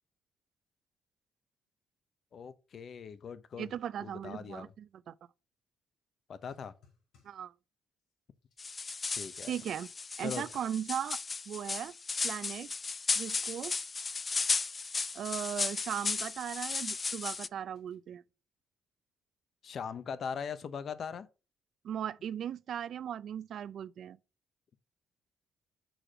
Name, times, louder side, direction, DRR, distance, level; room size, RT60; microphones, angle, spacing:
voice 1, 2.3-3.7 4.0-4.7 6.3-6.7 9.1-9.5 10.2-10.4 19.6-21.3, left 6 dB, 55° left, 0.8 m, -40 dB
voice 2, 3.6-5.1 7.2-7.5 9.5-9.9 10.2-11.2 11.5-11.9 12.2-12.7 13.2-13.7 15.1-18.2 21.8-24.2, right 9 dB, 65° right, 0.5 m, -37 dB
sound 1, 6.4-7.5 8.0-8.1 8.4-9.5 9.8-10.1 10.5-10.6 10.8-11.5 11.9-12.8 13.0-13.4 13.9-14.8 15.5-15.7 16.2-17.3 17.7-18.0, left 5 dB, 90° left, 3.0 m, -70 dB
sound 2, 8.6-17.5, left 4 dB, 35° left, 0.4 m, -35 dB
6.3 x 4.9 x 4.9 m
cardioid pair, 90°, 0 cm